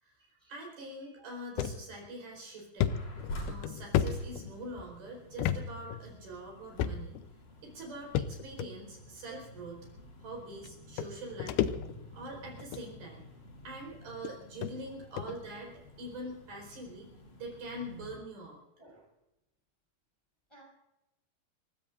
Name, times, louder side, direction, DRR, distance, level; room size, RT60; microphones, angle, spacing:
voice 1, 0.0-3.0 3.5-7.2 7.6-9.9 10.2-11.6 12.1-13.3 13.6-17.1 17.4-18.6, right 1 dB, 60° right, 0 dB, 6.1 m, -44 dB
sound 1, 1.6-1.8 2.2-2.3 2.8-4.8 5.4-5.6 5.9-6.0 6.8-7.3 8.2-8.7 9.6-9.7 10.6-10.7 11.0-12.2 12.6-12.9 13.7-13.8 14.2-14.3 14.6-14.7 15.2-15.4, left 10 dB, 75° left, 2.5 m, -32 dB
sound 2, 2.9-18.2, left 1 dB, 50° left, 5.0 m, -49 dB
voice 2, 18.8-19.1 20.5-20.6, right 2 dB, 5° left, -3 dB, 5.9 m, -58 dB
29.5 x 16.0 x 2.6 m, 0.88 s
omnidirectional pair, 5.0 m